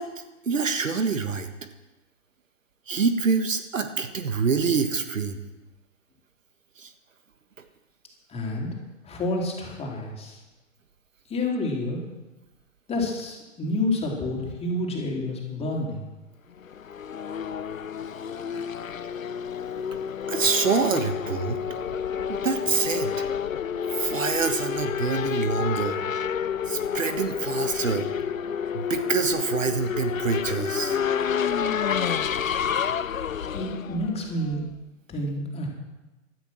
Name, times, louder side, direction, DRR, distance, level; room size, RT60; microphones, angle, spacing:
voice 1, 0.0-1.5 2.9-5.4 6.8-6.9 20.3-21.6 22.3-23.3 23.9-26.0 26.7-28.1 28.7-31.0, right 5 dB, 75° right, 9 dB, 1.7 m, -26 dB
voice 2, 8.3-8.7 9.0-10.4 11.3-12.0 12.9-16.1 33.5-34.6 35.1-35.7, left 1 dB, 15° left, -1 dB, 4.2 m, -29 dB
Race car auto racing / Accelerating revving vroom, 16.6-34.8, left 7 dB, 85° left, 0.7 m, -29 dB
17.0 x 13.0 x 6.3 m, 1.1 s
figure-of-eight pair, 110°, 39 cm